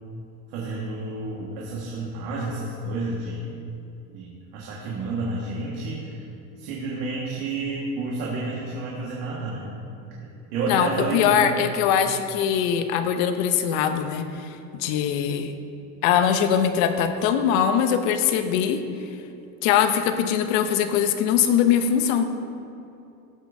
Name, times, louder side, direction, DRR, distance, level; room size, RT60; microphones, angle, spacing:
voice 1, 0.5-3.5 4.1-6.1 6.6-9.7 10.5-11.7, right 2 dB, 85° right, -5 dB, 1.8 m, -30 dB
voice 2, 10.7-15.5 16.0-18.8 19.6-22.2, left 8 dB, 85° left, 8 dB, 0.9 m, -22 dB
14.0 x 8.4 x 2.7 m, 2.7 s
cardioid pair, 125°, 39 cm